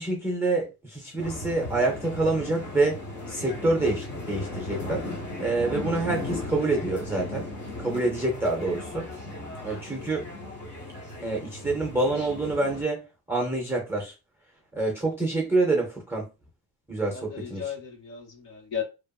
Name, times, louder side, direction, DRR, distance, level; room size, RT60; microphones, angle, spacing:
voice 1, 0.0-3.0 3.3-5.0 5.4-7.5 7.8-9.1 9.6-10.3 11.2-13.0 13.3-14.1 14.7-16.3 16.9-17.7, right 2 dB, 5° right, 0.4 m, -27 dB
sound 1, 1.2-12.8, left 2 dB, 25° left, 0.9 m, -36 dB
voice 2, 17.1-18.8, left 8 dB, 65° left, 1.6 m, -35 dB
2.8 x 2.4 x 2.2 m
cardioid pair, 175°, 41 cm